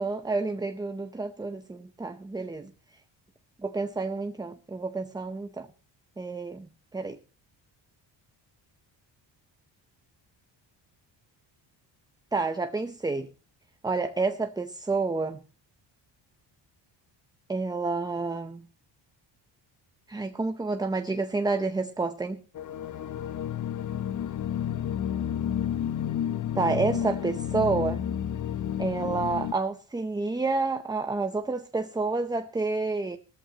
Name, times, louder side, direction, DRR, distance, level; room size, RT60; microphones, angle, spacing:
voice 1, 0.0-2.7 3.6-5.7 6.2-7.2 12.3-13.3 13.8-15.4 17.5-18.6 20.1-22.4 26.6-28.0 28.8-33.2, right 3 dB, 10° right, 0.6 m, -29 dB
sound 1, 22.5-29.5, left 10 dB, 45° left, 0.7 m, -31 dB
19.0 x 14.0 x 2.9 m
cardioid pair, 170°, 46 cm